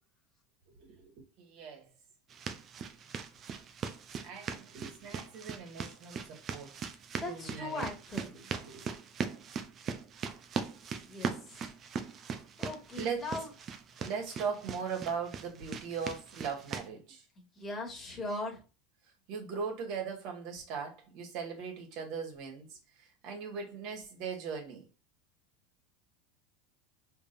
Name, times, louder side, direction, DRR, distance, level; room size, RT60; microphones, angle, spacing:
voice 1, 0.8-1.9 4.2-6.8 7.3-7.9 8.5-8.9 13.0-13.3 14.0-17.2 19.3-24.9, right 6 dB, 50° right, 1.9 m, -39 dB
sound 1, 2.3-16.9, right 6 dB, 30° right, 0.6 m, -40 dB
voice 2, 7.2-8.4 11.1-11.3 12.6-13.5 17.4-18.6, left 2 dB, 15° left, 1.9 m, -39 dB
5.0 x 3.5 x 2.6 m
supercardioid pair, 145°, 0 cm